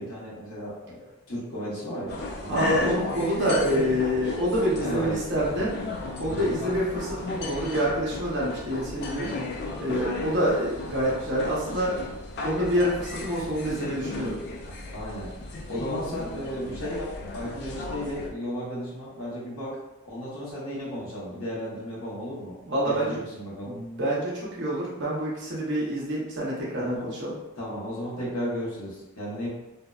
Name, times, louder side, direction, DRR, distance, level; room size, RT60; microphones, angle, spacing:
voice 1, 0.0-2.8 4.8-5.2 5.5-5.8 6.3-6.6 14.9-19.8 20.0-22.6 22.8-23.8 26.8-27.1 27.6-29.5, equal, 65° left, -6 dB, 0.9 m, -34 dB
sound 1, 2.1-18.3, left 2 dB, 45° left, 0.3 m, -35 dB
voice 2, 2.5-5.8 6.2-9.3 9.8-12.0 12.4-14.4 22.6-23.2 23.6-27.3, equal, 50° right, -6 dB, 0.8 m, -27 dB
2.7 x 2.1 x 2.3 m, 0.98 s
head